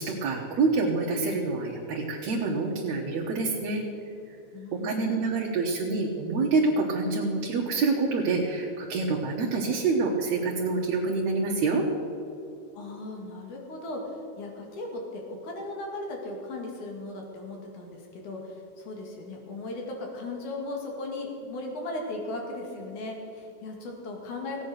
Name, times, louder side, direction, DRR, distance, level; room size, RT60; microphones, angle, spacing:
voice 1, 0.0-3.8 4.7-11.8, right 3 dB, 70° right, -2 dB, 2.4 m, -27 dB
voice 2, 4.5-5.2 12.7-24.6, left 2 dB, 85° left, 1 dB, 3.6 m, -37 dB
16.0 x 8.9 x 6.6 m, 2.7 s
omnidirectional pair, 3.4 m